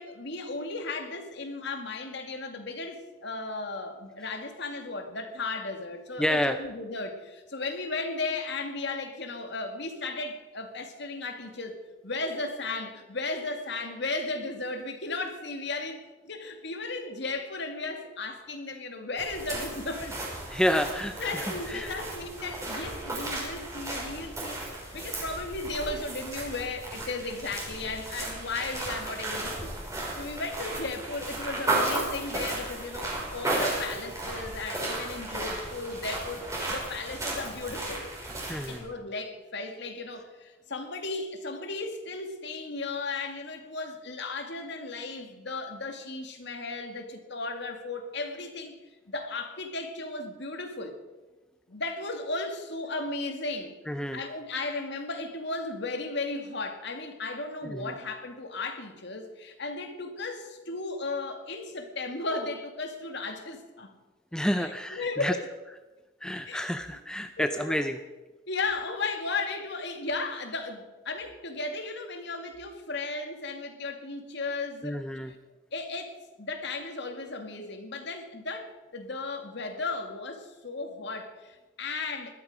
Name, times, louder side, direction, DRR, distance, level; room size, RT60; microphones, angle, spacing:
voice 1, 0.0-20.1 21.2-29.7 30.2-38.1 38.7-48.8 49.1-51.0 51.7-53.8 54.1-64.0 64.6-65.5 66.5-66.6 67.4-67.9 68.5-75.0 75.2-75.4 75.7-82.3, left 3 dB, 60° left, 6 dB, 2.2 m, -35 dB
voice 2, 6.2-6.6 20.5-22.0 38.5-38.9 53.9-54.2 57.6-57.9 64.3-65.3 66.2-68.0 74.8-75.3, equal, 5° left, 7 dB, 0.6 m, -29 dB
sound 1, 19.2-38.8, right 2 dB, 15° right, 5.3 m, -34 dB
20.5 x 13.0 x 5.0 m, 1.2 s
head